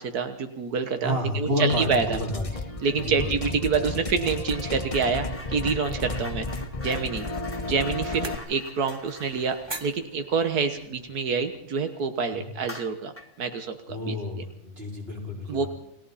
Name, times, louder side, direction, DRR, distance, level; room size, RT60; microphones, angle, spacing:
voice 1, 0.0-2.2 2.8-6.5 6.8-7.3 7.7-13.1 13.4-14.4 15.5-15.7, right 5 dB, 90° right, 7 dB, 1.8 m, -27 dB
voice 2, 1.0-2.5 3.0-3.4 6.1-6.2 7.6-7.7 12.3-12.5 13.9-15.7, left 1 dB, 40° right, -2 dB, 5.5 m, -30 dB
sound 1, 1.7-8.3, left 3 dB, 25° left, 1.3 m, -33 dB
sound 2, 2.8-3.1 3.4-11.6 11.9-12.0 12.6-13.4, left 2 dB, 10° left, 1.7 m, -45 dB
sound 3, 6.3-11.7, right 2 dB, 20° right, 1.0 m, -44 dB
29.5 x 21.0 x 4.2 m, 0.73 s
omnidirectional pair, 1.6 m